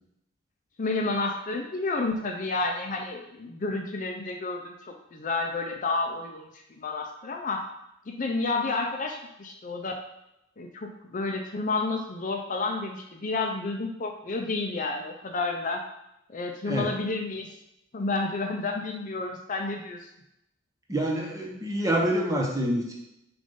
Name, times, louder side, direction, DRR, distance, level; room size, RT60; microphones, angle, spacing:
voice 1, 0.8-4.7 5.1-7.6 8.1-9.9 10.6-15.8 16.3-17.5 17.9-20.1, left 3 dB, 40° left, 3 dB, 0.5 m, -30 dB
voice 2, 20.9-22.9, right 1 dB, 15° right, -1 dB, 1.0 m, -26 dB
6.7 x 2.6 x 5.4 m, 0.84 s
head